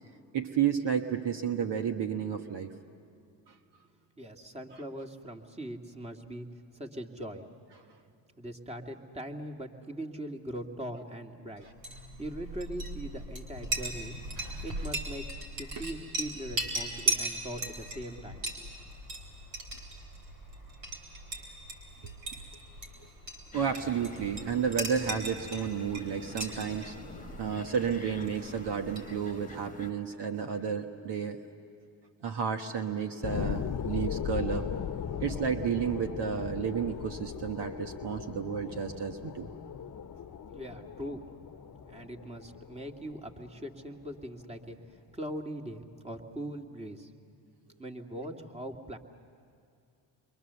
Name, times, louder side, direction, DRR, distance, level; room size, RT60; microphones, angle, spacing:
voice 1, 0.3-2.7 14.4-14.6 22.0-22.1 23.0-23.1 23.5-27.0 27.4-31.4 32.2-34.7 35.2-39.5, right 7 dB, 60° right, 6 dB, 1.3 m, -32 dB
voice 2, 4.2-6.5 6.7-7.5 8.4-11.7 12.2-14.2 14.6-15.3 15.6-18.7 40.5-41.2 41.9-44.8 45.1-47.1 47.8-49.0, right 1 dB, 15° right, 3 dB, 2.2 m, -41 dB
Chink clink, 11.7-29.5, right 2 dB, 75° right, 4.3 m, -38 dB
sound 1, 23.5-29.9, left 3 dB, 15° left, 1.6 m, -47 dB
sound 2, 33.2-44.2 44.7-44.8, left 8 dB, 40° left, 1.1 m, -38 dB
29.0 x 23.0 x 7.0 m, 2.5 s
hypercardioid pair, 55°, 46 cm